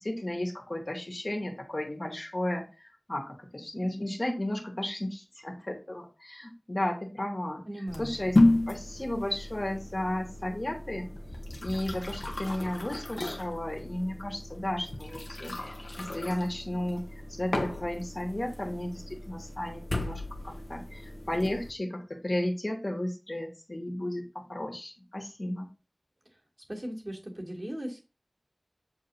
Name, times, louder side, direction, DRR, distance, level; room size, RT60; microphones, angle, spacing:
voice 1, 0.0-7.6 8.0-8.3 8.7-11.1 11.6-17.0 17.3-25.7, left 1 dB, 50° left, 0 dB, 2.5 m, -34 dB
voice 2, 7.6-8.2 26.7-28.0, equal, 50° right, -3 dB, 3.3 m, -37 dB
sound 1, 7.9-21.7, left 2 dB, 80° left, 1.4 m, -32 dB
7.7 x 7.3 x 3.0 m, 0.31 s
wide cardioid pair, 45°, 0 cm